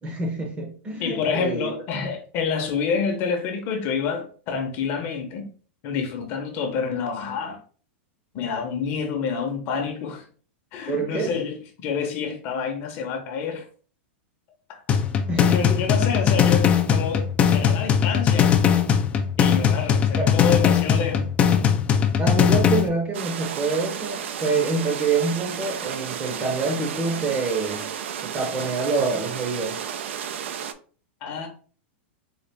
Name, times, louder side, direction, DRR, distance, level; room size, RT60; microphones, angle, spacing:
voice 1, 0.0-1.7 10.9-11.3 15.3-15.6 20.2-20.3 22.2-27.9 28.2-29.8, right 4 dB, 20° right, 0.7 m, -26 dB
voice 2, 1.0-5.5 5.8-7.6 8.3-10.3 10.7-13.7 14.7-14.8 15.3-18.6 19.4-21.3 31.2-31.5, left 6 dB, 35° left, 0.7 m, -28 dB
sound 1, 14.9-22.9, left 8 dB, 20° left, 0.3 m, -20 dB
sound 2, 23.1-30.7, right 8 dB, 80° right, 0.4 m, -33 dB
4.0 x 2.4 x 3.3 m
supercardioid pair, 155°, 6 cm